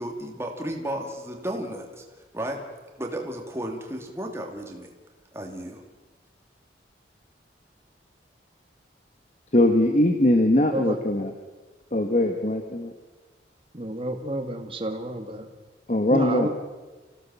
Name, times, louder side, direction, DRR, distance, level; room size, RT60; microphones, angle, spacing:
voice 1, 0.0-2.0 2.3-2.6 3.0-4.9 5.3-5.8, right 1 dB, 15° right, 2 dB, 2.8 m, -33 dB
voice 2, 9.5-11.3 11.9-12.9 15.9-16.5, left 1 dB, 40° left, 5 dB, 1.4 m, -21 dB
voice 3, 13.7-15.5 16.1-16.5, right 1 dB, 30° right, 5 dB, 2.1 m, -29 dB
26.5 x 16.5 x 7.2 m, 1.3 s
head